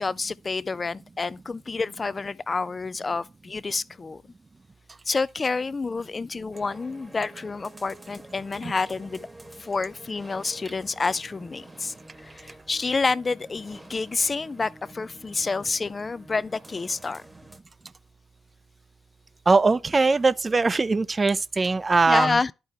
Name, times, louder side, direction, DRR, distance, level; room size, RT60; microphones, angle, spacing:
voice 1, 0.0-4.2 5.1-9.2 9.6-17.2 22.1-22.5, left 4 dB, 35° left, 0.3 m, -28 dB
sound 1, 6.5-17.6, right 1 dB, 15° right, 1.1 m, -49 dB
voice 2, 19.5-22.4, right 3 dB, 30° right, 0.4 m, -21 dB
11.0 x 4.5 x 3.3 m
hypercardioid pair, 45°, 0 cm